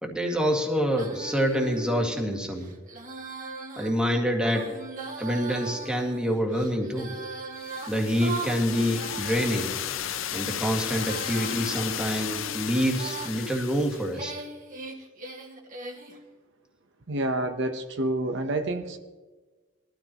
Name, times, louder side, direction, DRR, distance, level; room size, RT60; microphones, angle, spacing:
voice 1, 0.0-2.7 3.8-4.7 5.2-7.2 7.9-9.7 10.3-14.3, equal, 5° right, 1 dB, 1.9 m, -26 dB
Female singing, 0.9-9.8 10.4-13.4 13.9-16.2, right 3 dB, 45° right, 1.8 m, -40 dB
sound 1, 7.6-14.1, left 10 dB, 70° left, 0.6 m, -34 dB
voice 2, 17.1-19.0, right 2 dB, 65° right, 6 dB, 0.9 m, -28 dB
21.0 x 13.0 x 3.0 m, 1.3 s
head